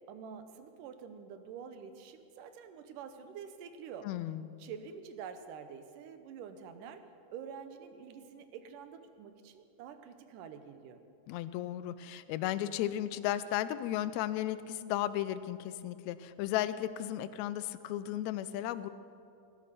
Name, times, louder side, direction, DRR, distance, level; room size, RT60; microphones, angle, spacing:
voice 1, 0.1-4.1 4.6-7.0 7.3-11.0, right 7 dB, 85° right, 9 dB, 2.5 m, -47 dB
voice 2, 4.0-4.5 11.3-18.9, left 12 dB, 80° left, 13 dB, 1.7 m, -35 dB
18.0 x 10.5 x 6.8 m, 2.6 s
omnidirectional pair, 3.7 m